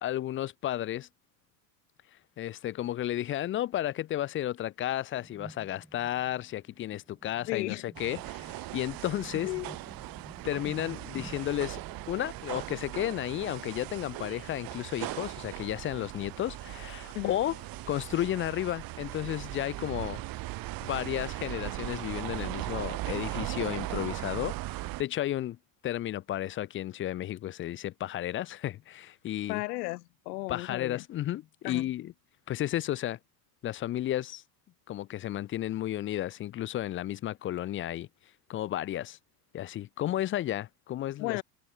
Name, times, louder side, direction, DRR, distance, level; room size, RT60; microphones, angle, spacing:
voice 1, 0.0-1.1 2.4-9.5 10.4-11.8 12.1-17.6 17.9-20.2 20.8-25.6 25.8-29.6 30.5-32.1 32.5-33.2 33.6-34.4 34.9-38.1 38.5-39.2 39.5-41.4, left 13 dB, 25° left, 0.5 m, -33 dB
sound 1, 5.1-14.4, right 1 dB, 5° right, 6.7 m, -52 dB
voice 2, 7.5-7.9 9.4-9.8 17.1-17.4 29.5-31.0 31.6-31.9 41.2-41.4, left 20 dB, 75° left, 1.2 m, -34 dB
sound 2, 7.9-25.0, right 19 dB, 45° right, 1.5 m, -38 dB
sound 3, 13.4-18.4, right 9 dB, 30° right, 4.3 m, -53 dB
supercardioid pair, 110°, 48 cm